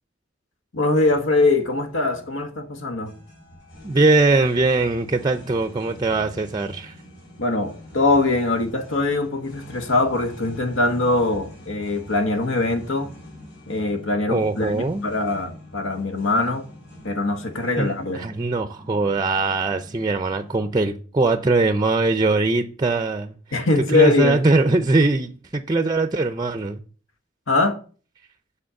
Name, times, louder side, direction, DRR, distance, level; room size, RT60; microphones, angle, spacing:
voice 1, 0.7-3.1 7.4-13.1 13.7-16.7 17.0-18.2 23.5-24.4 27.5-27.8, left 2 dB, 85° left, 1.4 m, -22 dB
sound 1, 1.0-20.8, left 1 dB, 60° left, 3.8 m, -44 dB
voice 2, 3.8-6.9 14.3-15.0 17.8-23.3 23.9-26.8, right 3 dB, 20° right, 0.5 m, -21 dB
7.7 x 4.3 x 7.0 m
head